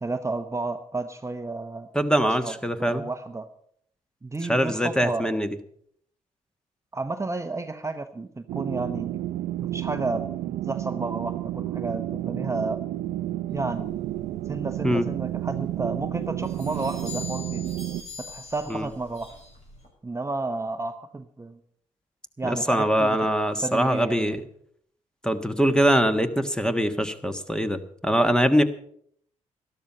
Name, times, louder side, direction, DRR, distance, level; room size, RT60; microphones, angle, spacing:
voice 1, 0.0-1.9 2.4-3.5 4.2-5.3 6.9-9.2 9.7-10.3 10.6-12.8 13.5-13.9 14.5-17.7 18.2-19.3 20.0-21.6 22.4-23.2 23.6-24.4, right 3 dB, 20° right, 8 dB, 0.9 m, -32 dB
voice 2, 1.9-3.0 4.4-5.5 14.8-15.1 18.7-18.9 22.4-24.4 25.2-28.6, equal, 5° left, 9 dB, 1.4 m, -23 dB
sound 1, 8.5-18.0, right 13 dB, 80° right, 0.5 m, -31 dB
sound 2, 13.5-19.9, left 4 dB, 50° left, 6.8 m, -44 dB
12.5 x 12.5 x 5.5 m, 0.66 s
supercardioid pair, 50°, 14 cm